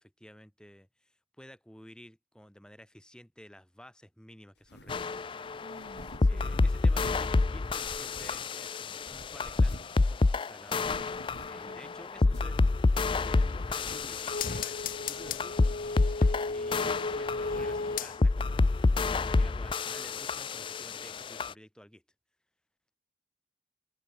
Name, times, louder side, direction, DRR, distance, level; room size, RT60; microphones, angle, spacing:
voice 1, 0.0-5.6 6.2-10.2 10.5-10.9 11.4-12.7 12.9-22.0, equal, 5° left, 5.7 m, -53 dB
sound 1, 4.6-5.2 5.7-7.4 7.7-8.7 9.0-10.0 10.3-10.4 10.7-11.7 12.2-12.6 13.1-13.2 13.6-14.3 15.0-15.5 15.8-16.7 17.0-17.9, left 1 dB, 75° left, 5.1 m, -49 dB
sound 2, 4.9-21.5, left 3 dB, 30° left, 0.4 m, -28 dB
voice 2, 5.6-6.6 10.9-11.2 11.5-12.0 16.2-16.6, right 1 dB, 50° right, 4.0 m, -53 dB
sound 3, 13.4-18.5 18.9-19.0, left 4 dB, 50° left, 0.9 m, -35 dB
open air
head